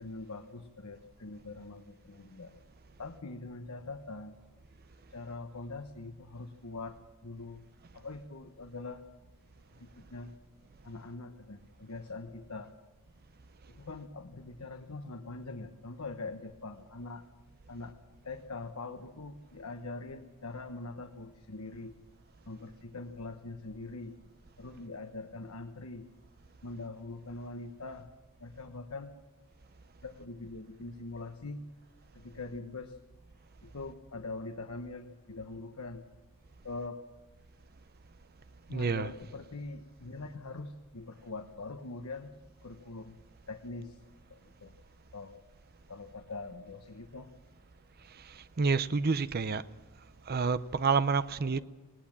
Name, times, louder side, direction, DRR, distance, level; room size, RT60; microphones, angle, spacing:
voice 1, 0.0-2.5 3.0-4.4 5.1-7.6 7.9-9.1 9.8-10.4 10.8-12.7 13.7-17.3 17.7-18.0 18.2-22.0 22.5-24.2 24.6-26.1 26.6-28.1 28.4-29.2 30.0-31.6 32.1-33.0 33.6-36.0 36.6-37.0 38.7-42.3 42.6-43.2 43.5-44.0 44.3-44.7 45.1-45.4 45.9-47.3, left 3 dB, 75° left, 1.1 m, -43 dB
voice 2, 38.7-39.1 48.3-49.6 50.3-51.6, right 4 dB, 45° right, 0.6 m, -29 dB
20.0 x 18.0 x 7.4 m
head